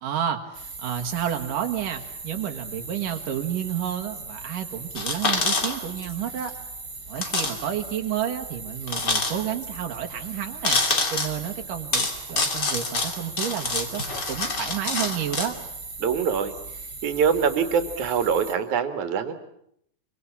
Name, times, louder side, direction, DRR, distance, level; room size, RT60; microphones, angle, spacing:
voice 1, 0.0-6.5 7.1-10.8 11.1-15.6, right 10 dB, 90° right, 5 dB, 3.4 m, -30 dB
sound 1, 0.5-18.5, right 4 dB, 30° right, 3.5 m, -39 dB
sound 2, 5.0-6.1 6.4-6.5 7.2-7.6 7.8-7.9 8.9-9.7 10.6-11.3 11.9-15.5, left 3 dB, 35° left, 2.9 m, -26 dB
voice 2, 16.0-16.5 17.0-19.3, right 7 dB, 65° right, 9 dB, 3.3 m, -24 dB
25.5 x 24.5 x 8.7 m, 0.73 s
omnidirectional pair, 3.7 m